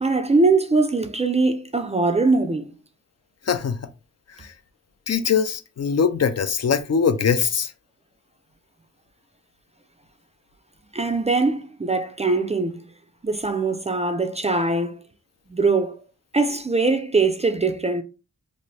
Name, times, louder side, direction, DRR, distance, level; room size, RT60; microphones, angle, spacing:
voice 1, 0.0-2.7 10.9-12.8 13.2-15.0 15.5-16.0 16.3-18.0, right 3 dB, 20° right, 0.3 m, -21 dB
voice 2, 3.5-3.8 4.4-4.5 5.1-7.7, left 6 dB, 55° left, 0.4 m, -22 dB
2.7 x 2.5 x 3.1 m
wide cardioid pair, 70°, 31 cm